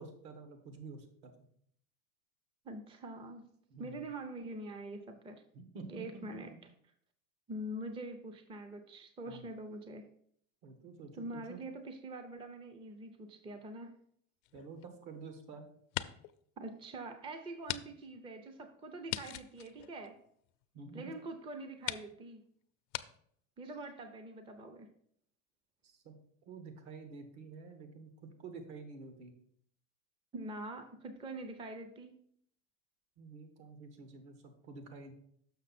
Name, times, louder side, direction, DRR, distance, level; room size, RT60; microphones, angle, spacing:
voice 1, 0.0-1.4 3.7-4.1 5.5-6.4 9.3-9.4 10.6-11.6 14.5-15.6 20.7-21.1 25.8-26.2 26.5-28.1 28.4-29.3 33.2-35.1, right 4 dB, 65° right, 6 dB, 1.6 m, -49 dB
voice 2, 2.6-3.5 3.8-5.4 5.9-6.7 7.5-10.1 11.1-14.0 16.6-20.2 20.9-22.4 23.6-24.9 30.3-32.2, right 2 dB, 15° right, 7 dB, 0.5 m, -44 dB
sound 1, 14.4-15.4 15.8-16.4 16.8-16.9 17.6-17.8 18.1-18.2 19.1-20.6 21.3-21.4 21.8-22.1 22.9-23.1, left 17 dB, 75° left, 0.6 m, -40 dB
6.6 x 5.9 x 4.2 m, 0.65 s
supercardioid pair, 125°, 40 cm